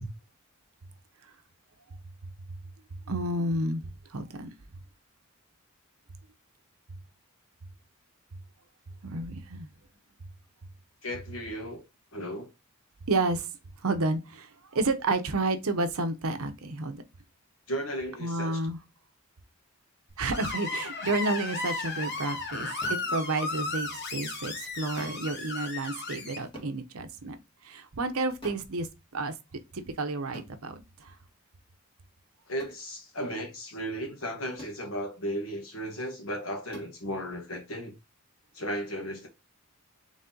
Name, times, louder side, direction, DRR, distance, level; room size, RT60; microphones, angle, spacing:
voice 1, 3.1-4.5 9.0-9.7 13.1-13.5 13.8-17.0 18.2-18.8 20.2-27.4 27.6-28.9 29.1-29.3 29.7-31.1, right 2 dB, 75° right, 0.8 m, -31 dB
voice 2, 11.0-11.8 12.1-12.5 17.7-18.6 32.5-37.9 38.5-39.3, equal, 65° left, 1.4 m, -35 dB
Screech, 20.3-26.4, left 3 dB, 50° left, 1.0 m, -34 dB
sound 1, 21.1-21.2 22.8-23.1 25.0-25.3 26.5-26.8 28.4-28.7 30.3-30.6 32.6-32.8 34.6-34.8 36.7-37.0, equal, 20° left, 1.6 m, -45 dB
4.1 x 3.3 x 3.7 m
head